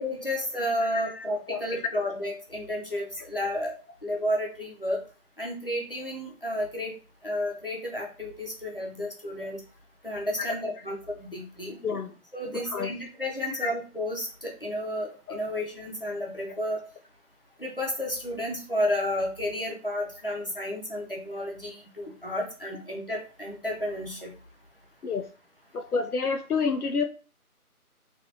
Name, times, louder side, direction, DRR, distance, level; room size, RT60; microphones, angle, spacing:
voice 1, 0.0-3.7 4.0-5.0 5.4-6.9 7.2-9.6 10.0-11.8 12.3-16.8 17.6-24.3, left 1 dB, 40° left, -1 dB, 0.7 m, -32 dB
voice 2, 0.8-1.7 10.4-10.8 11.8-12.1 12.5-13.0 13.5-13.7 15.3-15.5 22.6-22.8 25.0-25.3 25.7-27.0, left 5 dB, 75° left, 5 dB, 0.5 m, -30 dB
3.3 x 2.5 x 2.6 m, 0.36 s
figure-of-eight pair, 170°, 45 cm